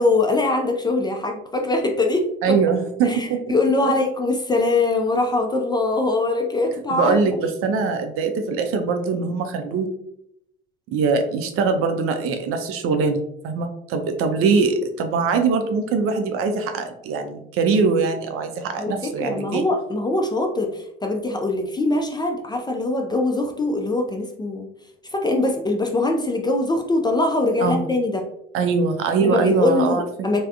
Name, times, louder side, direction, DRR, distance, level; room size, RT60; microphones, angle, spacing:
voice 1, 0.0-2.6 3.0-7.4 18.8-24.7 25.1-28.2 29.2-30.4, left 2 dB, 15° left, 3 dB, 0.4 m, -22 dB
voice 2, 2.4-3.4 3.8-3.9 6.9-9.9 10.9-19.6 27.6-27.9 28.5-30.3, right 5 dB, 50° right, 6 dB, 0.5 m, -22 dB
3.3 x 2.1 x 2.4 m, 0.76 s
hypercardioid pair, 65°, 29 cm